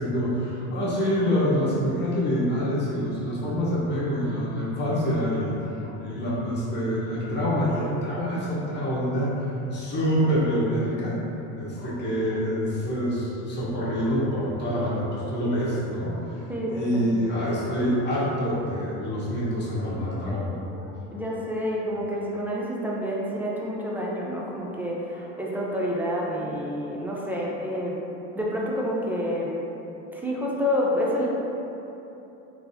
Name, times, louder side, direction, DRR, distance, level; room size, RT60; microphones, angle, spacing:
voice 1, 0.0-9.4 9.7-11.2 11.6-16.4 16.7-21.2 25.1-25.2, equal, 25° left, -8 dB, 1.0 m, -26 dB
voice 2, 16.5-17.2 21.1-28.0 28.3-29.5 30.1-31.3, equal, 5° right, -4 dB, 0.4 m, -28 dB
3.6 x 2.8 x 2.7 m, 3.0 s
supercardioid pair, 105°, 39 cm